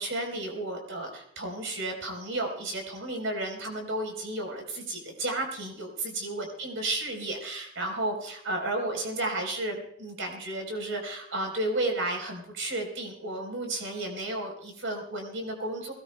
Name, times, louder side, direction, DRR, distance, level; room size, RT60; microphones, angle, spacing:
voice 1, 0.0-15.9, right 2 dB, 75° right, 3 dB, 4.0 m, -33 dB
22.0 x 18.5 x 2.2 m, 0.65 s
head